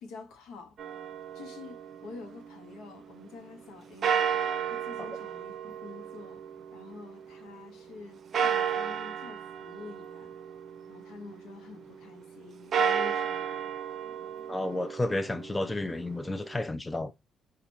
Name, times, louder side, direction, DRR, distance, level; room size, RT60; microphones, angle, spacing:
voice 1, 0.0-0.8 1.3-6.4 6.7-10.3 10.9-13.7, left 4 dB, 80° left, 1.1 m, -48 dB
sound 1, 0.8-2.9 4.0-7.4 8.3-11.3 12.6-16.6, right 7 dB, 60° right, 0.5 m, -33 dB
voice 2, 14.5-17.1, left 2 dB, 20° left, 0.6 m, -31 dB
4.5 x 2.5 x 4.1 m
supercardioid pair, 60°, 0 cm